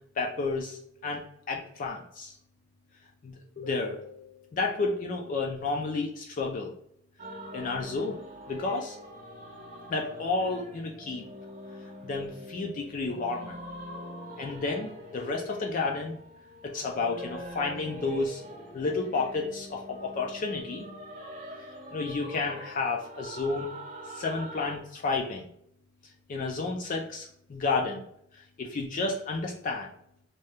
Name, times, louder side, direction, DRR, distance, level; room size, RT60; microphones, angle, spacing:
voice 1, 0.2-1.2 1.5-2.3 3.2-6.7 7.5-8.2 8.5-9.0 9.9-11.2 12.0-13.5 14.4-16.1 16.6-18.4 18.7-20.8 21.9-23.7 24.1-25.5 26.3-28.0 28.6-29.9, left 3 dB, 40° left, 1 dB, 0.3 m, -31 dB
sound 1, 7.2-24.8, equal, 40° right, 0.7 m, -44 dB
2.7 x 2.2 x 3.3 m, 0.71 s
head